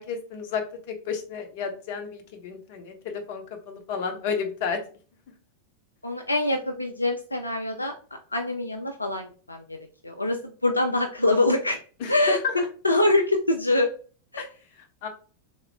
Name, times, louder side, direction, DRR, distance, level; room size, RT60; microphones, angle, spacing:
voice 1, 0.0-4.8 12.0-12.4 14.4-14.5 15.0-15.1, left 6 dB, 50° left, 5 dB, 0.7 m, -32 dB
voice 2, 6.0-9.8 10.0-11.8 12.1-13.9 14.3-14.4, left 2 dB, 85° left, 4 dB, 0.3 m, -24 dB
3.5 x 2.1 x 3.3 m, 0.39 s
figure-of-eight pair, 90°, 0 cm